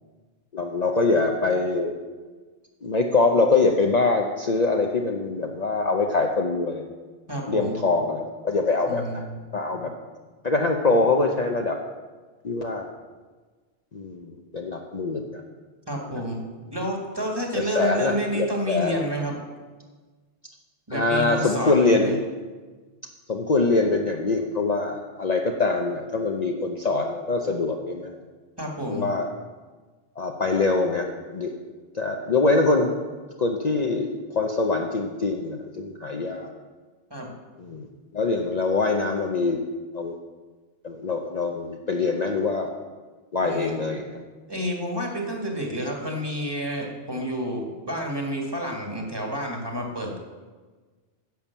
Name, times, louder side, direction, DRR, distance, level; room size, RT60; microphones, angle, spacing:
voice 1, 0.5-1.9 2.8-6.9 7.5-9.2 9.5-9.9 10.4-11.8 12.4-12.9 13.9-15.4 16.1-16.2 17.5-19.0 20.9-22.1 23.3-28.2 28.9-29.3 30.2-31.5 31.9-32.9 33.4-36.5 37.6-37.9 38.1-39.6 39.9-40.2 40.8-42.7 43.3-44.2, left 3 dB, 40° left, 2 dB, 0.8 m, -24 dB
voice 2, 7.3-7.8 8.9-9.4 15.9-16.4 16.7-19.4 20.9-22.2 28.6-29.1 37.1-37.3 43.4-43.8 44.5-50.2, equal, 20° right, 0 dB, 1.9 m, -29 dB
10.5 x 7.2 x 7.2 m, 1.4 s
omnidirectional pair, 1.2 m